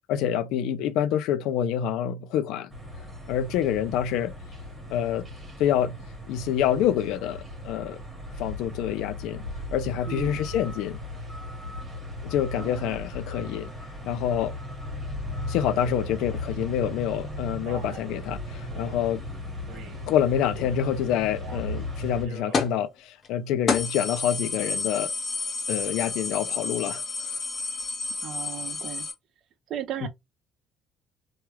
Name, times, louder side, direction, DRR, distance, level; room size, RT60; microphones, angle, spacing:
voice 1, 0.1-2.7 3.3-4.3 4.9-5.3 5.6-6.0 6.3-8.0 8.4-9.4 9.7-11.0 12.2-13.7 14.0-14.5 15.5-19.2 20.1-25.1 25.7-27.3 30.0-30.1, left 10 dB, 75° left, 0.4 m, -27 dB
sound 1, 2.7-22.3, left 1 dB, 15° right, 1.2 m, -37 dB
voice 2, 10.1-10.4 12.5-13.0 28.2-29.1 29.7-30.1, right 10 dB, 50° right, 0.5 m, -36 dB
Male speech man speaking, 17.6-18.1 18.7-19.1 19.7-20.1 20.5-20.9 21.3-21.8 22.2-22.6, right 5 dB, 85° right, 1.5 m, -44 dB
sound 2, 22.5-22.8 23.2-23.3 23.7-29.1, left 4 dB, 30° left, 0.7 m, -30 dB
3.1 x 2.3 x 3.0 m
cardioid pair, 170°, 0 cm